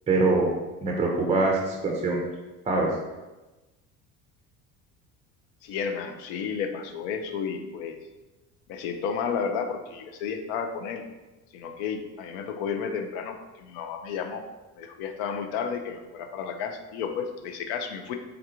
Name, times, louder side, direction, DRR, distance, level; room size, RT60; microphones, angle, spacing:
voice 1, 0.1-0.5 0.8-2.2 2.7-2.9, right 3 dB, 15° right, -1 dB, 0.5 m, -23 dB
voice 2, 5.6-8.0 8.7-11.0 11.5-14.4 14.8-18.2, left 6 dB, 65° left, 6 dB, 0.5 m, -32 dB
3.5 x 2.3 x 2.8 m, 1.1 s
hypercardioid pair, 65°, 46 cm